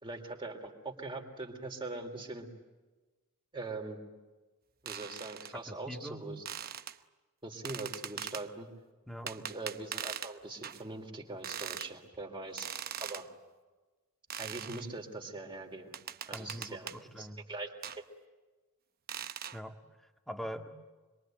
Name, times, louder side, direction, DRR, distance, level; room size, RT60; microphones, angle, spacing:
voice 1, 0.0-2.5 3.5-4.0 4.8-6.4 7.4-8.7 9.2-12.7 13.0-13.2 14.4-16.0 16.3-16.9 17.2-17.7, right 2 dB, 20° right, 2 dB, 3.4 m, -42 dB
sound 1, 4.9-5.5 6.4-7.0 7.6-8.5 9.3-10.3 10.6-10.8 11.4-11.9 12.6-13.3 14.3-14.8 15.9-17.0 17.8-18.0 19.1-19.6, right 9 dB, 45° right, 0.9 m, -41 dB
voice 2, 5.7-6.2 9.1-9.3 16.3-17.4 19.5-19.7 20.0-20.7, equal, ahead, 6 dB, 1.8 m, -43 dB
26.5 x 23.0 x 9.2 m, 1.2 s
head